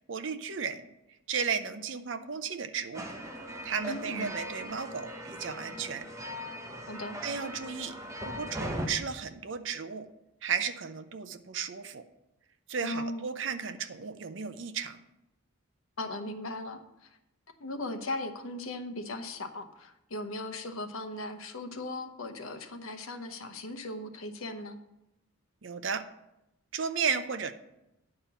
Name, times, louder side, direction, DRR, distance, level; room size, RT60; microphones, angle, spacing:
voice 1, 0.1-0.9 1.3-3.0 3.6-6.1 7.2-7.9 8.2-10.1 10.4-12.0 12.7-15.0 25.6-26.1 26.7-27.5, right 6 dB, 60° right, 9 dB, 0.6 m, -34 dB
sound 1, 2.9-8.9, equal, 15° right, 0.8 m, -39 dB
voice 2, 3.8-4.3 6.9-7.2 12.8-13.3 16.0-17.2 17.6-24.8, left 2 dB, 75° left, 7 dB, 0.9 m, -38 dB
9.7 x 4.4 x 6.9 m, 0.89 s
head